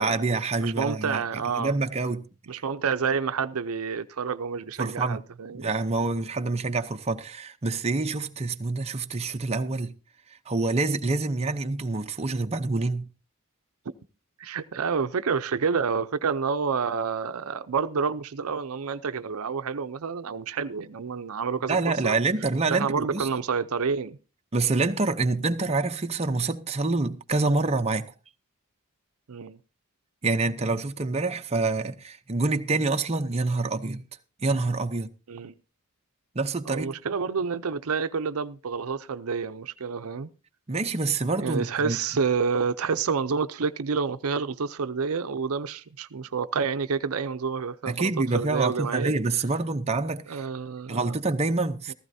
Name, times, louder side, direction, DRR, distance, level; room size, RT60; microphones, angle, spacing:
voice 1, 0.0-1.2 1.5-2.3 4.8-5.2 5.5-9.9 10.5-13.0 21.7-23.3 24.5-28.1 30.2-34.0 34.4-35.1 36.3-36.9 40.7-42.0 47.8-50.4 50.9-51.9, right 3 dB, 30° right, 0.7 m, -26 dB
voice 2, 0.6-1.7 2.5-5.7 14.4-22.2 22.7-24.2 29.3-29.6 35.3-35.5 36.6-40.3 41.4-49.1 50.3-51.1 51.9-52.0, right 5 dB, 70° right, 0.6 m, -29 dB
15.5 x 14.5 x 2.7 m
head